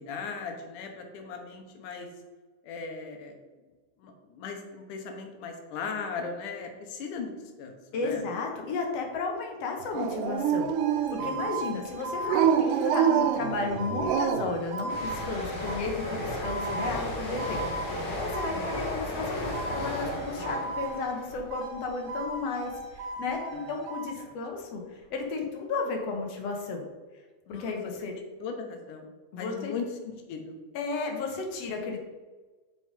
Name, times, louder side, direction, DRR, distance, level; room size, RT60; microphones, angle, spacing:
voice 1, 0.0-2.1 2.6-3.4 4.0-8.2 11.4-11.5 18.5-18.8 23.5-23.8 24.2-24.3 27.5-27.8 28.4-29.1 29.4-30.6, left 5 dB, 80° left, 4 dB, 2.5 m, -38 dB
voice 2, 7.9-10.7 11.1-26.9 27.5-28.1 29.3-29.7 30.7-32.0, left 4 dB, 65° left, 2 dB, 1.9 m, -33 dB
Dog, 9.9-11.4 12.2-14.6, right 8 dB, 90° right, 2.2 m, -26 dB
sound 1, 10.7-19.0 19.5-21.2 21.5-24.1, right 2 dB, 65° right, 1.7 m, -37 dB
Train Passing Close Left to Right A, 14.9-22.3 22.6-23.0, left 1 dB, 45° left, 2.6 m, -35 dB
6.7 x 5.6 x 5.1 m, 1.3 s
omnidirectional pair, 3.6 m